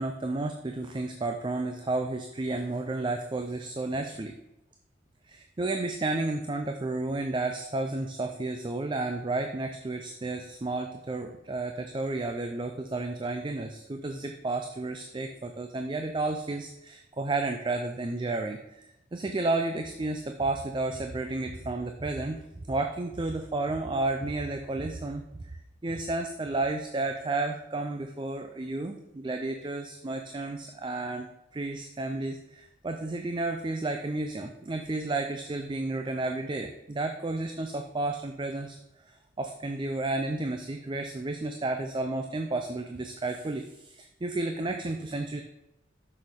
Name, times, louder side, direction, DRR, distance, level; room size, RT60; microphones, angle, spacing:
voice 1, 0.0-4.4 5.3-18.9 19.1-38.8 39.0-45.4, right 2 dB, 25° right, 5 dB, 0.4 m, -32 dB
6.5 x 6.4 x 3.6 m, 0.90 s
head